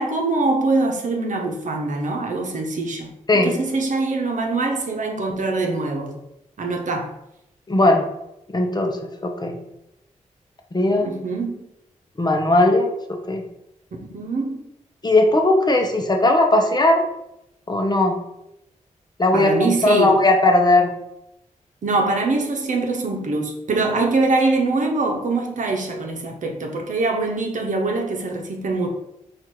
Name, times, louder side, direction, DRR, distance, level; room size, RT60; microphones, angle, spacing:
voice 1, 0.0-6.2 6.6-7.1 11.0-11.7 13.9-14.6 19.3-20.1 21.8-28.9, right 3 dB, 65° right, 2 dB, 0.8 m, -23 dB
voice 2, 7.7-8.0 8.5-9.5 10.7-11.1 12.2-13.4 15.0-17.1 17.7-18.2 19.2-20.9, left 2 dB, 30° left, 3 dB, 0.8 m, -18 dB
4.4 x 2.5 x 4.5 m, 0.85 s
cardioid pair, 65°, 14 cm